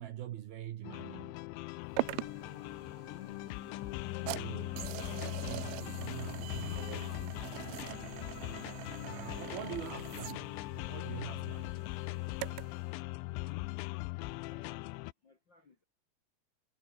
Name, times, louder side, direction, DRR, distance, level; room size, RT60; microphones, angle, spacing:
voice 1, 0.0-1.4 4.3-7.5 9.0-11.9, right 12 dB, 65° right, 2.6 m, -45 dB
sound 1, 0.8-15.1, left 22 dB, 85° left, 2.7 m, -40 dB
sound 2, 2.0-12.8, right 25 dB, 90° right, 2.5 m, -43 dB
voice 2, 14.4-15.8, left 3 dB, 60° left, 1.2 m, -66 dB
omnidirectional pair, 5.7 m